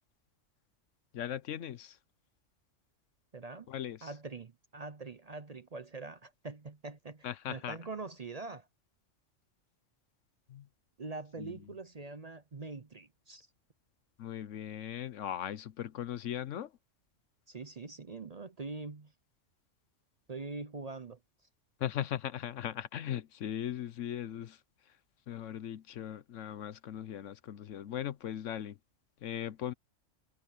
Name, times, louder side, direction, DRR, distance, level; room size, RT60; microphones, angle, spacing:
voice 1, 1.1-2.0 3.7-4.1 7.2-7.8 10.5-10.7 11.4-11.6 14.2-16.7 21.8-24.6 25.3-28.8 29.2-29.7, left 10 dB, 75° left, 1.1 m, -38 dB
voice 2, 3.3-3.7 4.0-8.7 11.0-13.5 17.5-19.1 20.3-21.2, right 3 dB, 35° right, 0.7 m, -43 dB
omnidirectional pair, 1.3 m